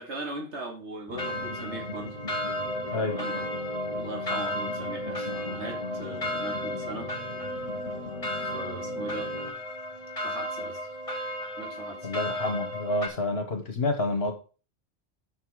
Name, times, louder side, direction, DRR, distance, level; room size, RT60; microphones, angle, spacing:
voice 1, 0.0-2.2 3.1-3.4 3.9-7.1 8.4-9.3 10.2-10.8 11.6-12.1, right 2 dB, 90° right, 1 dB, 2.5 m, -39 dB
sound 1, 1.1-9.5, left 3 dB, 45° right, 4.8 m, -39 dB
sound 2, 1.2-13.1, equal, 30° left, 1.9 m, -34 dB
voice 2, 12.0-14.3, left 2 dB, 65° left, 4 dB, 1.8 m, -28 dB
7.0 x 6.7 x 4.9 m, 0.35 s
omnidirectional pair, 1.1 m